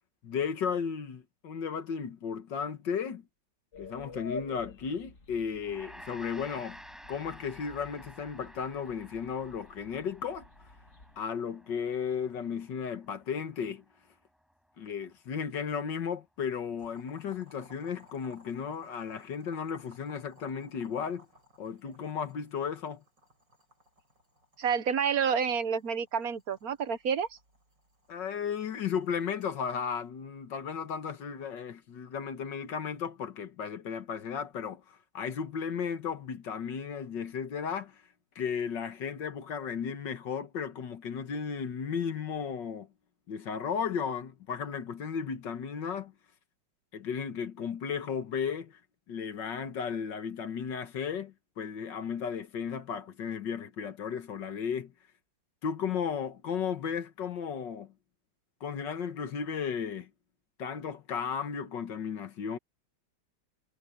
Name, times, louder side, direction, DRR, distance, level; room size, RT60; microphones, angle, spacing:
voice 1, 0.2-3.3 3.8-6.8 7.1-10.5 11.2-13.8 14.8-21.3 21.6-23.0 28.1-38.0 38.4-42.9 43.3-46.1 46.9-48.8 49.1-54.9 55.6-57.9 58.6-60.1 60.6-62.6, left 7 dB, 75° left, 2.1 m, -34 dB
sound 1, 3.7-11.3, left 3 dB, 45° left, 2.7 m, -48 dB
Gong, 5.6-15.0, equal, ahead, 7.4 m, -53 dB
Boiling, 16.8-30.0, left 2 dB, 75° right, 8.9 m, -60 dB
voice 2, 24.6-27.3, right 7 dB, 60° right, 1.3 m, -29 dB
omnidirectional pair, 1.9 m